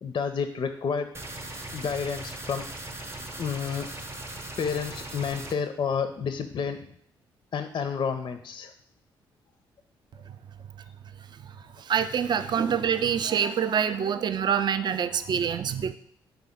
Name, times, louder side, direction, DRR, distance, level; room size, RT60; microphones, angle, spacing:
voice 1, 0.0-1.1 1.7-2.6 3.4-3.9 4.6-6.8 7.5-8.7, left 6 dB, 40° left, 8 dB, 0.4 m, -30 dB
sound 1, 1.1-5.5, right 1 dB, 20° right, 0.7 m, -39 dB
voice 2, 11.9-15.9, right 8 dB, 40° right, 11 dB, 0.4 m, -26 dB
4.3 x 3.5 x 3.5 m, 0.69 s
hypercardioid pair, 40°, 12 cm